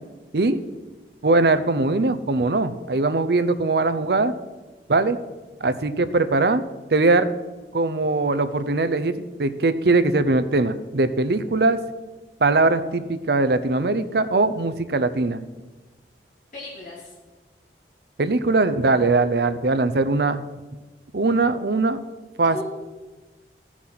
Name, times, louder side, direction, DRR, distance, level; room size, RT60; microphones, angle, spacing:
voice 1, 1.2-4.3 4.9-5.2 5.6-6.6 6.9-7.3 7.7-11.8 12.4-15.4 18.2-20.4 21.1-22.0 22.4-22.6, right 3 dB, 60° right, 12 dB, 0.6 m, -21 dB
voice 2, 16.5-17.1 22.5-22.6, left 2 dB, 45° left, -7 dB, 3.0 m, -36 dB
14.5 x 6.1 x 5.9 m, 1.2 s
head